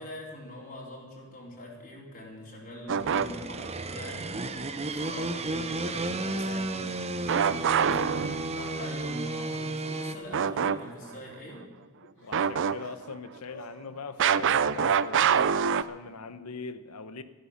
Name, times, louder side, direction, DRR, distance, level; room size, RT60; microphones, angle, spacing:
voice 1, 0.0-11.6, left 1 dB, 40° left, -3 dB, 4.0 m, -43 dB
sound 1, 2.9-3.7 7.3-8.8 10.3-10.8 11.1-11.2 12.3-13.1 14.2-15.8, right 7 dB, 55° right, 0.5 m, -25 dB
sound 2, 3.0-10.1, right 2 dB, 30° right, 0.9 m, -33 dB
Crying sobbing, 7.3-8.0 8.7-9.0 9.3-11.0 11.6-11.7 12.0-12.9 13.4-13.7 15.0-15.6, left 2 dB, 60° left, 4.3 m, -52 dB
voice 2, 12.2-17.2, left 4 dB, 90° left, 12 dB, 1.0 m, -41 dB
14.5 x 12.0 x 7.3 m, 1.4 s
head